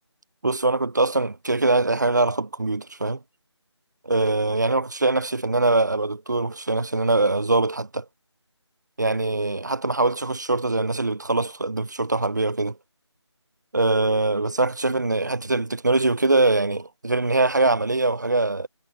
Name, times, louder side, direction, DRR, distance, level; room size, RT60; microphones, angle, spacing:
voice 1, 0.4-3.2 4.0-8.0 9.0-12.8 13.7-18.7, right 2 dB, 40° right, 0.5 m, -22 dB
figure-of-eight pair, 170°, 15 cm